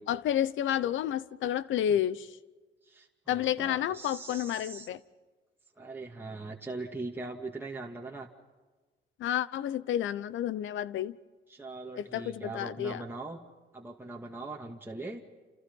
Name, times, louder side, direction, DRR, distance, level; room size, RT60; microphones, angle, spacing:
voice 1, 0.1-2.3 3.3-5.0 9.2-11.2 12.0-13.0, left 10 dB, 75° left, 0.9 m, -30 dB
voice 2, 2.8-4.9 5.8-8.3 11.5-13.4 13.7-15.2, right 3 dB, 10° right, 2.3 m, -41 dB
29.5 x 28.5 x 5.5 m
cardioid pair, 90°, 20 cm